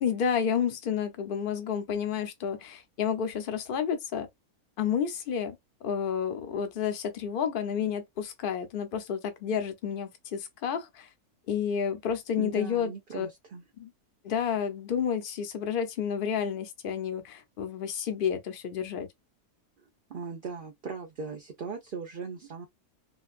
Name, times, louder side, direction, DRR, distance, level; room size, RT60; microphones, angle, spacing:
voice 1, 0.0-4.3 4.8-5.6 5.8-11.1 11.5-13.3 13.8-13.9 14.2-19.1, left 7 dB, 45° left, 0.7 m, -30 dB
voice 2, 12.4-13.6 19.8-19.9 20.1-22.7, right 5 dB, 55° right, 0.6 m, -38 dB
3.8 x 2.3 x 2.4 m
omnidirectional pair, 1.6 m